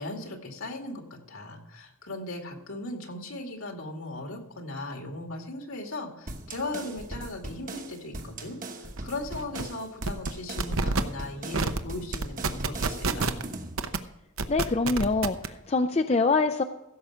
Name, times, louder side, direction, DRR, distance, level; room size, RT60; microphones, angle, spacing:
voice 1, 0.0-13.3, left 2 dB, 75° left, 2 dB, 2.4 m, -38 dB
sound 1, 6.3-13.8, right 2 dB, 40° right, 1.1 m, -39 dB
sound 2, 9.0-9.1 9.4-9.6 10.0-10.3 10.6-11.0 11.5-11.8 12.1-13.4 13.8-14.0 14.4-15.5, right 3 dB, 70° right, 0.8 m, -27 dB
voice 2, 14.5-16.6, left 3 dB, 30° left, 8 dB, 0.4 m, -25 dB
15.5 x 7.0 x 5.0 m, 0.93 s
head